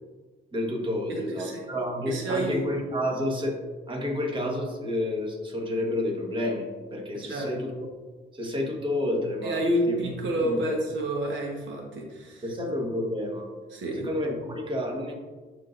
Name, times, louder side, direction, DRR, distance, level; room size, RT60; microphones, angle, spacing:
voice 1, 0.5-3.5 3.9-7.7 8.3-9.6 9.9-10.1 10.4-10.7 12.4-13.4 14.0-15.1, left 1 dB, 25° right, 1 dB, 1.4 m, -30 dB
voice 2, 1.1-1.6 2.1-2.6 7.2-7.5 9.4-12.4 13.7-14.1, right 1 dB, 70° right, 0 dB, 1.2 m, -29 dB
11.5 x 3.9 x 2.6 m, 1.3 s
cardioid pair, 90°, 20 cm